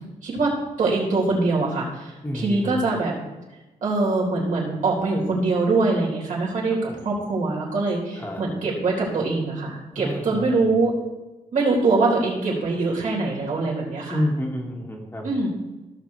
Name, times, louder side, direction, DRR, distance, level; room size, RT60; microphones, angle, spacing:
voice 1, 0.2-3.2 3.8-10.9 11.5-14.2 15.2-15.5, right 3 dB, 65° right, -4 dB, 3.7 m, -23 dB
voice 2, 2.2-2.8 6.9-7.1 8.2-8.4 9.9-10.7 14.1-15.3, equal, 15° left, -1 dB, 1.5 m, -29 dB
16.5 x 6.6 x 3.2 m, 1.1 s
wide cardioid pair, 125°, 14 cm